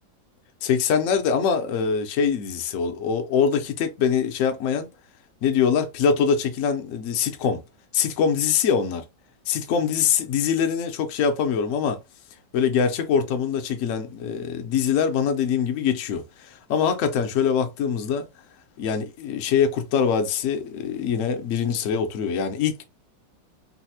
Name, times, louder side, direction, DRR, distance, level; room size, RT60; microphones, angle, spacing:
voice 1, 0.6-4.9 5.4-7.6 7.9-9.1 9.5-12.0 12.5-18.3 18.8-22.8, left 7 dB, 65° left, 0.8 m, -23 dB
4.0 x 2.0 x 2.7 m
omnidirectional pair, 2.0 m